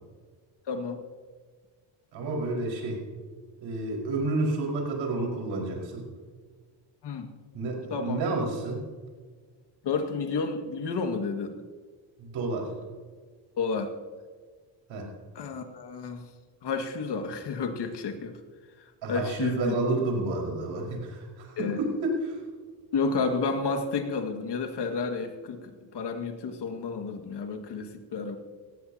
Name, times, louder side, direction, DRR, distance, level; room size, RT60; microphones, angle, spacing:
voice 1, 0.7-1.0 7.0-7.3 7.9-8.2 9.8-11.6 13.6-13.9 15.4-16.3 16.6-18.4 19.1-19.8 21.6-21.8 22.9-28.4, left 4 dB, 60° left, 5 dB, 2.1 m, -31 dB
voice 2, 2.1-3.0 3.6-6.1 7.5-8.8 12.2-12.7 14.9-15.1 19.0-22.4, right 2 dB, 70° right, -1 dB, 5.2 m, -30 dB
18.5 x 15.5 x 2.9 m, 1.5 s
cardioid pair, 90°, 47 cm